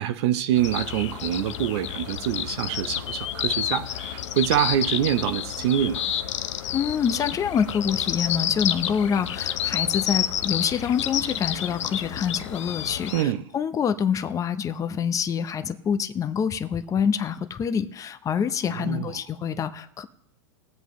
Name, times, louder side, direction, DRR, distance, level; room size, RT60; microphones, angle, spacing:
voice 1, 0.0-6.0 13.1-13.5 18.6-19.2, right 11 dB, 60° right, 0.7 m, -25 dB
sound 1, 0.5-13.2, left 10 dB, 80° left, 0.8 m, -29 dB
voice 2, 6.7-20.0, left 7 dB, 20° left, 0.7 m, -26 dB
21.0 x 7.6 x 3.1 m
hypercardioid pair, 120°, 15 cm